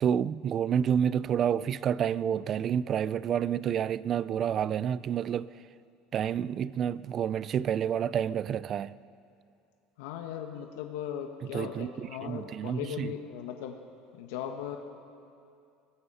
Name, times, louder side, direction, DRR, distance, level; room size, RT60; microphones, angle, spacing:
voice 1, 0.0-5.5 6.1-8.9 11.5-11.9 12.2-13.1, right 8 dB, 35° right, 0.4 m, -29 dB
voice 2, 10.0-13.7 14.1-14.8, left 9 dB, 80° left, 1.4 m, -38 dB
25.0 x 19.0 x 5.6 m
cardioid pair, 150°, 0 cm